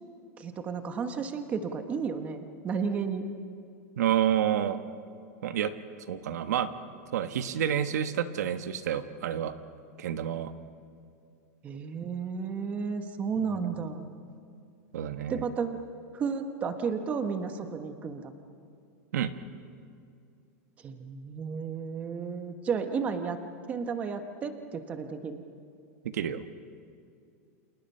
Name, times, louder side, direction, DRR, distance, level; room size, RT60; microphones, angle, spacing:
voice 1, 0.4-3.3 11.6-14.0 15.3-15.8 16.1-18.3 20.8-23.4 23.7-25.4, right 5 dB, 15° right, 7 dB, 1.2 m, -33 dB
voice 2, 4.0-4.8 5.4-5.7 6.1-6.7 7.1-9.5 10.0-10.5 13.4-13.8 14.9-15.4 19.1-19.3 26.0-26.4, right 10 dB, 90° right, 9 dB, 1.4 m, -29 dB
29.5 x 28.0 x 5.6 m, 2.4 s
supercardioid pair, 175°, 9 cm